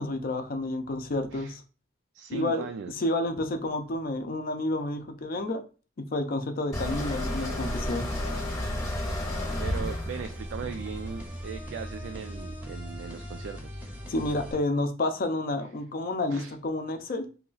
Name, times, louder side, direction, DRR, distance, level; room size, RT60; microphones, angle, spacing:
voice 1, 0.0-1.6 2.3-5.6 6.0-8.1 14.1-17.3, left 2 dB, 50° left, 7 dB, 0.5 m, -30 dB
voice 2, 2.1-3.0 9.6-13.8 16.3-16.5, right 6 dB, 65° right, 7 dB, 0.3 m, -38 dB
sound 1, 6.7-11.7, left 1 dB, 20° left, 0.9 m, -32 dB
sound 2, 6.9-14.5, equal, 10° right, 0.6 m, -39 dB
2.8 x 2.4 x 3.9 m, 0.35 s
head